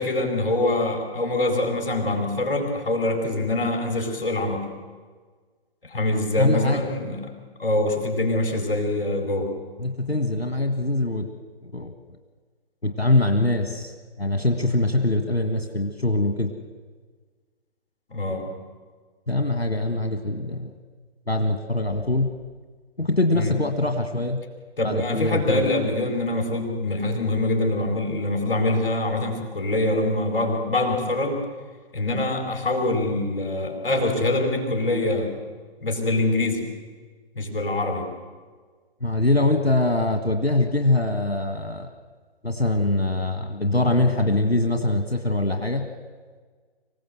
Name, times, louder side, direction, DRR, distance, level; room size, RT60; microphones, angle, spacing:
voice 1, 0.0-4.6 5.8-7.2 7.6-9.5 18.1-18.5 23.3-23.5 24.8-31.4 31.9-35.3 35.8-36.6 37.3-38.1, left 2 dB, 60° left, 4 dB, 4.6 m, -24 dB
voice 2, 6.4-6.8 9.8-11.3 11.6-11.9 12.8-13.9 14.2-16.5 19.3-20.7 21.3-22.3 23.0-24.4 24.8-25.7 39.0-41.9 42.4-45.9, left 2 dB, 90° left, 5 dB, 1.8 m, -23 dB
25.5 x 17.0 x 7.8 m, 1.5 s
figure-of-eight pair, 130°, 31 cm